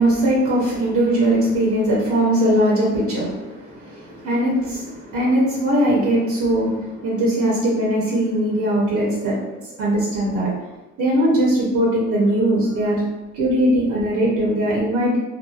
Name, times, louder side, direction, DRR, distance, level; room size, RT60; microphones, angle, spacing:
voice 1, 0.0-10.5 11.0-13.0 13.3-15.2, right 1 dB, 70° right, -4 dB, 0.8 m, -20 dB
3.0 x 2.4 x 2.3 m, 1.0 s
cardioid pair, 90°, 30 cm